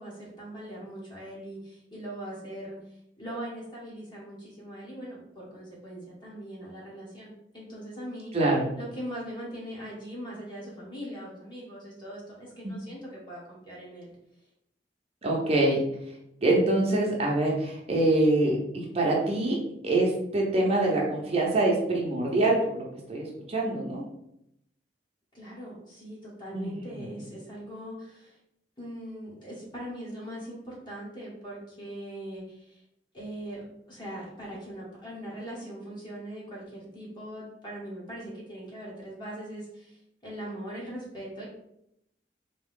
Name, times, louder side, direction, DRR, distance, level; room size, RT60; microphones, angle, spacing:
voice 1, 0.0-8.4 8.7-14.1 25.3-28.4 28.8-32.8 33.1-33.6 33.9-41.5, right 1 dB, 25° left, -6 dB, 1.6 m, -41 dB
voice 2, 8.3-8.7 12.6-12.7 15.2-15.8 16.4-19.6 19.8-24.0 26.5-27.1, right 2 dB, 35° right, -3 dB, 0.8 m, -25 dB
3.6 x 3.0 x 3.7 m, 0.79 s
head